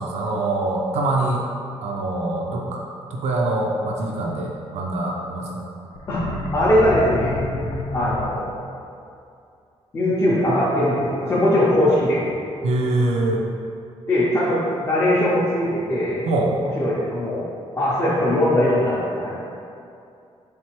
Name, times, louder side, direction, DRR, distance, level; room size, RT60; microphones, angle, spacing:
voice 1, 0.0-1.4 1.8-2.8 3.1-5.7 12.6-13.4 16.3-16.5, right 2 dB, 75° right, -1 dB, 0.4 m, -24 dB
sound 1, 5.9-8.7, left 3 dB, 85° left, 0.4 m, -29 dB
voice 2, 6.1-7.4 7.9-8.5 9.9-12.2 14.1-16.2 16.6-17.5 17.8-19.3, left 1 dB, 25° left, -8 dB, 0.5 m, -20 dB
3.8 x 3.2 x 2.9 m, 2.5 s
wide cardioid pair, 160°, 11 cm